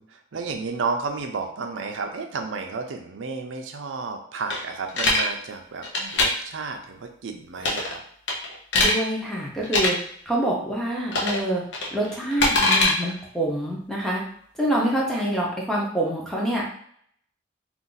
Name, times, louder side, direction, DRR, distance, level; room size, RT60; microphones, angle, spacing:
voice 1, 0.0-8.0, right 4 dB, 90° right, 4 dB, 0.5 m, -32 dB
sound 1, 4.5-5.2 5.8-6.3 7.6-8.0 8.3-9.0 9.6-9.9 11.1-11.4 11.7-12.9, left 2 dB, 70° left, 0.7 m, -21 dB
voice 2, 8.7-10.0 10.3-11.6 11.9-14.2 14.6-16.7, right 1 dB, ahead, -4 dB, 0.7 m, -26 dB
2.6 x 2.5 x 3.9 m, 0.63 s
head